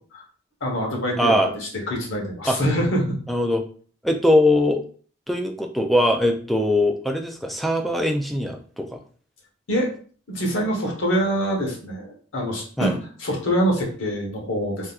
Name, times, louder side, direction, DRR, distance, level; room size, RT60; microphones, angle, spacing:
voice 1, 0.6-3.2 9.7-9.9 10.3-14.9, equal, 75° left, 0 dB, 1.1 m, -25 dB
voice 2, 1.2-1.5 2.5-2.6 3.3-3.6 4.0-4.8 5.3-9.0 12.8-12.9, left 1 dB, ahead, 4 dB, 0.3 m, -21 dB
3.5 x 2.7 x 2.4 m, 0.44 s
head